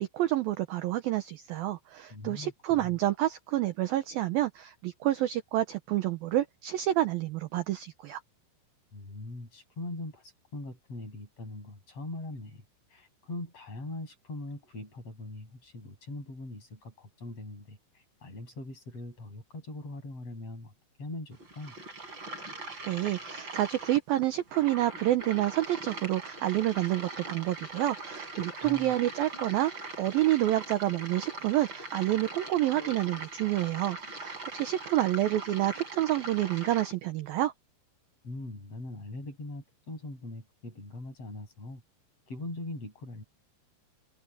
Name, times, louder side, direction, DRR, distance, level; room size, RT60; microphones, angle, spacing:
voice 1, 0.0-8.2 22.9-37.5, right 14 dB, 75° right, 2.2 m, -28 dB
voice 2, 2.1-2.5 2.8-3.0 8.9-12.6 12.9-20.7 21.0-21.8 28.6-28.9 38.2-41.8 42.3-43.2, left 2 dB, 30° left, 8.2 m, -41 dB
sound 1, 21.3-36.9, right 2 dB, 25° right, 6.2 m, -41 dB
omnidirectional pair, 5.4 m